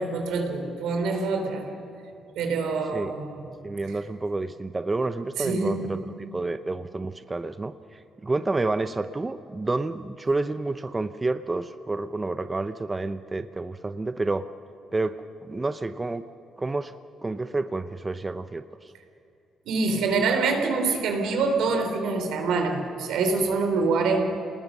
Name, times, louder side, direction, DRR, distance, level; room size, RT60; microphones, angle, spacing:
voice 1, 0.0-1.7 2.4-3.4 5.4-5.9 19.7-24.2, right 4 dB, 85° right, 4 dB, 3.6 m, -25 dB
voice 2, 3.6-6.0 6.3-14.4 14.9-16.2 16.6-16.9 17.2-18.9, right 3 dB, 20° right, 10 dB, 0.7 m, -29 dB
28.5 x 20.0 x 6.3 m, 2.8 s
cardioid pair, 90°, 0 cm